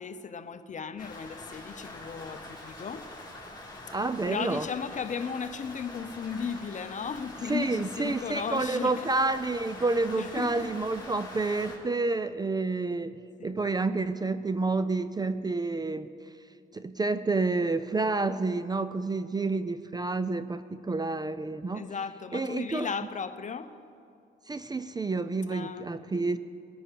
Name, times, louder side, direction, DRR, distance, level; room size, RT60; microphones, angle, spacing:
voice 1, 0.0-3.1 4.2-9.1 9.9-10.7 13.4-13.5 21.7-23.7 25.5-26.4, left 6 dB, 40° left, 11 dB, 0.8 m, -36 dB
Rain, 1.0-11.8, left 2 dB, 20° left, 3.7 m, -44 dB
voice 2, 3.9-4.7 7.5-16.1 16.7-21.9 22.3-22.9 24.5-26.4, right 3 dB, 20° right, 13 dB, 0.4 m, -29 dB
21.5 x 9.9 x 4.6 m, 2.5 s
cardioid pair, 90°, 20 cm